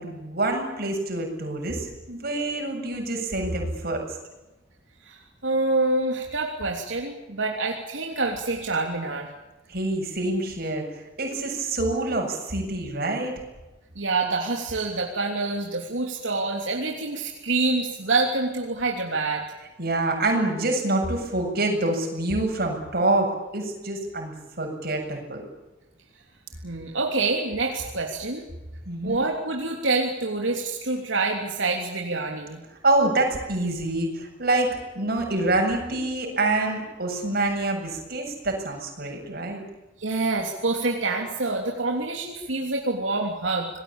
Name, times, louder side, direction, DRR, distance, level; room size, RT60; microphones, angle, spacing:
voice 1, 0.0-4.0 9.7-10.9 11.2-13.4 19.8-25.4 28.9-29.2 32.8-39.6, right 2 dB, 55° right, 2 dB, 7.5 m, -26 dB
voice 2, 5.0-9.3 13.9-19.4 26.6-28.4 29.0-32.6 40.0-43.7, right 3 dB, 85° right, 1 dB, 3.2 m, -26 dB
27.0 x 20.0 x 8.9 m, 1.0 s
head